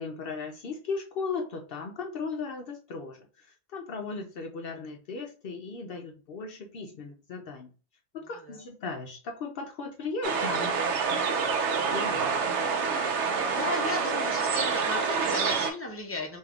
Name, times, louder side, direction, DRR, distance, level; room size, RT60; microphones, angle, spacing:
voice 1, 0.0-7.7 8.1-10.8 11.9-12.3, left 4 dB, 60° left, 3 dB, 0.6 m, -37 dB
sound 1, 10.2-15.7, right 5 dB, 65° right, 0.9 m, -27 dB
voice 2, 13.1-16.4, left 2 dB, 20° left, 2 dB, 0.3 m, -35 dB
3.4 x 2.7 x 3.5 m, 0.36 s
omnidirectional pair, 1.3 m